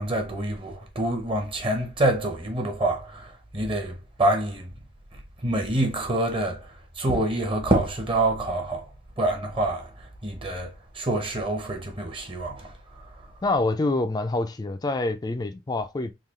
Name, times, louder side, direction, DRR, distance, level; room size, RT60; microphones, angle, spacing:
voice 1, 0.0-4.7 5.4-6.7 7.0-8.9 9.2-9.9 10.2-12.7, right 1 dB, 30° right, 0.8 m, -26 dB
voice 2, 13.4-16.1, left 2 dB, 20° left, 0.4 m, -26 dB
3.7 x 2.3 x 3.1 m
head